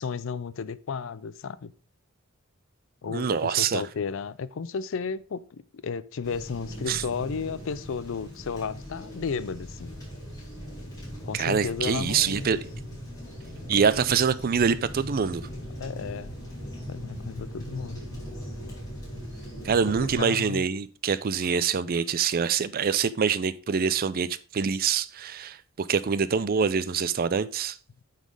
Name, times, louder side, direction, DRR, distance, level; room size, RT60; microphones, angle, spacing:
voice 1, 0.0-1.7 3.0-10.0 11.2-12.5 15.8-16.3 16.9-18.0 19.9-20.6, left 5 dB, 60° left, 0.4 m, -33 dB
voice 2, 3.1-3.8 6.9-7.0 11.3-12.6 13.7-15.4 19.6-24.3 24.5-27.8, right 6 dB, 45° right, 0.4 m, -25 dB
sound 1, 6.2-20.2, equal, 15° left, 4.3 m, -39 dB
9.1 x 4.1 x 4.8 m
head